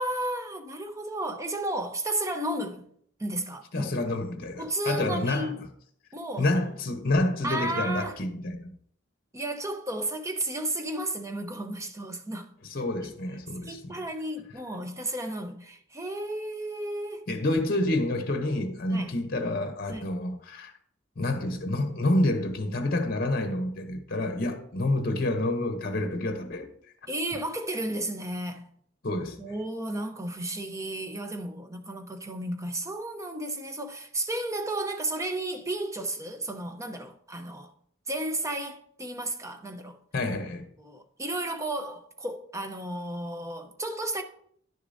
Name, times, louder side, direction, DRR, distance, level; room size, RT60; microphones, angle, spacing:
voice 1, 0.0-2.8 3.2-3.9 4.6-5.6 6.1-6.4 7.4-8.2 9.3-12.5 12.8-13.1 13.6-17.3 18.9-19.1 19.9-20.1 27.1-28.7 29.4-37.7 38.1-40.0 40.8-44.2, right 1 dB, 15° right, 0.7 m, -33 dB
voice 2, 3.7-5.5 6.4-8.8 12.7-14.0 17.3-20.7 21.2-26.7 29.0-29.4 40.1-40.7, left 1 dB, 50° left, 0.8 m, -28 dB
10.5 x 6.6 x 2.6 m
head